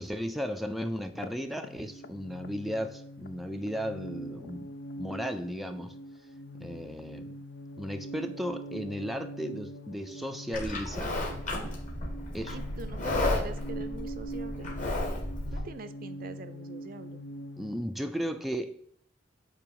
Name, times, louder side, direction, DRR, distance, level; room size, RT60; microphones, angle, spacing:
voice 1, 0.0-5.9 6.6-7.3 7.8-11.2 12.3-12.6 17.6-18.8, equal, ahead, 0.4 m, -35 dB
sound 1, 1.1-17.8, equal, 70° left, 0.5 m, -43 dB
Livestock farm animals working animals, 10.5-15.6, left 1 dB, 45° left, 1.8 m, -33 dB
voice 2, 12.5-14.7 15.5-17.2, right 3 dB, 50° right, 0.5 m, -43 dB
8.7 x 3.0 x 4.6 m
head